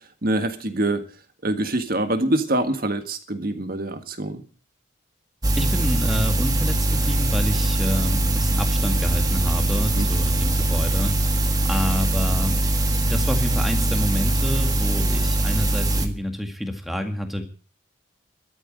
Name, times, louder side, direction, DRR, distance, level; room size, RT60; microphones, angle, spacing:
voice 1, 0.2-1.0 1.4-4.4 10.0-10.1, right 1 dB, 45° right, 8 dB, 1.8 m, -24 dB
sound 1, 5.4-16.1, right 1 dB, 20° right, 1.5 m, -22 dB
voice 2, 5.6-12.6 13.0-17.5, equal, ahead, 5 dB, 1.9 m, -28 dB
13.0 x 9.2 x 7.5 m, 0.39 s
head